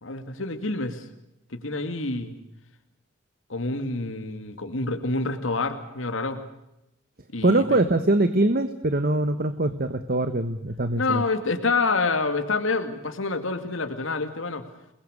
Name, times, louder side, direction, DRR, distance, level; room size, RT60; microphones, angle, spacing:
voice 1, 0.0-1.0 1.5-2.4 3.5-6.4 7.3-7.8 11.0-14.6, left 3 dB, 85° left, 7 dB, 2.4 m, -27 dB
voice 2, 7.4-11.2, right 2 dB, 50° right, 10 dB, 1.3 m, -23 dB
29.0 x 21.0 x 6.5 m, 0.85 s
head